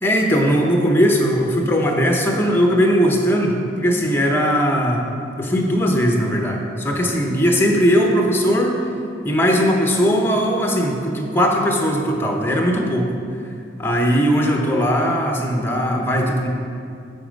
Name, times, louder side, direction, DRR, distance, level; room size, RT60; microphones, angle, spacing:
voice 1, 0.0-5.0 5.4-8.7 9.2-13.1 13.8-16.5, equal, 10° left, 1 dB, 0.8 m, -19 dB
9.7 x 5.2 x 5.2 m, 2.4 s
head